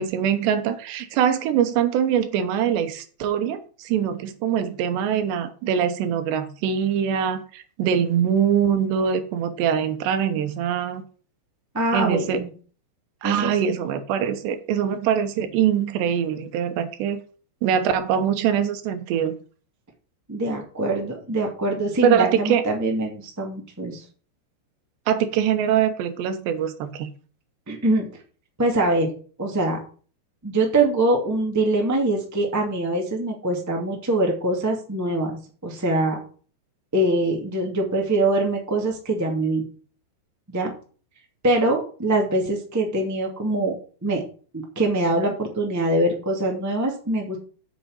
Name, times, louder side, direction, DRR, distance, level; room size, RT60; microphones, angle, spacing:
voice 1, 0.0-11.0 11.9-12.4 13.2-17.2 17.6-19.3 22.0-22.6 25.1-27.1, right 8 dB, 80° right, 9 dB, 3.2 m, -23 dB
voice 2, 11.7-12.5 13.2-13.5 20.3-24.0 27.7-28.1 28.6-29.1 29.4-29.8 30.4-35.3 35.6-36.2 36.9-39.6 40.5-40.7 41.4-43.7 44.0-44.2 44.5-47.4, right 2 dB, 10° right, 1 dB, 1.1 m, -23 dB
7.7 x 6.5 x 8.0 m, 0.41 s
omnidirectional pair, 5.0 m